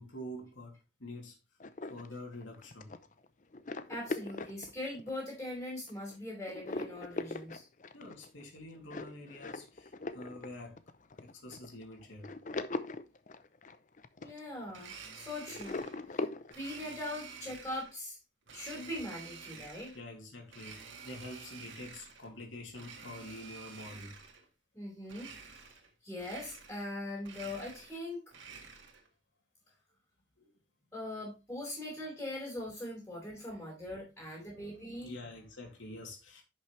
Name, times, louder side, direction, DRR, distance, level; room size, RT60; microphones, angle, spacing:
voice 1, 0.0-1.4 1.9-2.9 7.9-10.8 11.2-12.3 19.9-24.2 30.4-30.5 31.9-32.0 33.2-33.4 34.4-36.4, left 1 dB, 80° left, 3.0 m, -47 dB
sound 1, 1.6-5.4 5.9-6.2 6.5-15.1 15.5-16.5, left 2 dB, 40° left, 0.6 m, -41 dB
voice 2, 3.9-7.7 14.2-15.8 16.1-16.3 16.5-18.2 18.5-19.9 24.7-25.7 26.0-28.2 30.9-35.1, left 1 dB, 10° left, 4.5 m, -41 dB
Domestic sounds home sounds, 14.7-16.0 16.5-17.9 18.5-20.0 20.5-22.3 22.7-24.5 25.1-25.9 26.2-26.9 27.2-29.1, right 5 dB, 75° right, 2.0 m, -50 dB
10.5 x 6.1 x 3.2 m
head